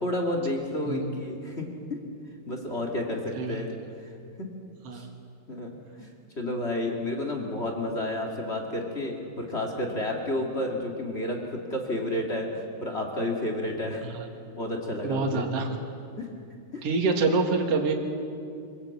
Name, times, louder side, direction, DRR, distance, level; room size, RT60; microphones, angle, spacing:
voice 1, 0.0-1.7 2.5-3.7 4.0-4.1 4.4-4.5 4.9-5.0 5.5-14.1 14.5-15.5 16.2-16.3 16.7-16.8, left 1 dB, 25° left, 1 dB, 1.3 m, -31 dB
voice 2, 15.0-15.7 16.8-17.9, right 3 dB, 45° right, 3 dB, 2.4 m, -25 dB
24.5 x 17.0 x 8.5 m, 2.5 s
omnidirectional pair, 4.6 m